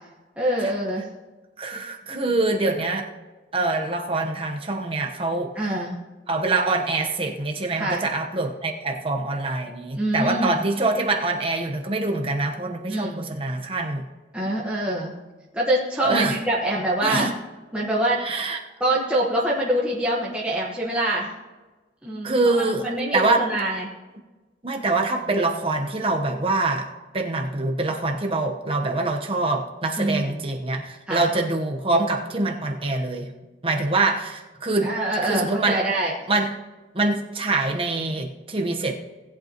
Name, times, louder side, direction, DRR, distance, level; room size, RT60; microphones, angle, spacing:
voice 1, 0.4-1.0 2.1-2.2 5.5-6.0 7.7-8.0 9.9-10.6 12.9-13.2 14.3-15.1 15.5-17.3 17.7-18.2 18.8-21.3 22.0-23.9 30.0-30.4 31.1-31.2 34.8-36.1, right 1 dB, 5° right, -6 dB, 1.3 m, -25 dB
voice 2, 1.6-3.1 3.5-5.5 6.3-14.1 16.0-16.4 17.0-17.3 18.2-18.6 22.2-22.9 23.1-23.4 24.6-26.9 27.1-33.3 33.6-34.9 35.2-35.8 36.3-36.6 36.9-38.9, right 2 dB, 30° right, 2 dB, 1.1 m, -24 dB
18.5 x 8.5 x 3.0 m, 1.2 s
head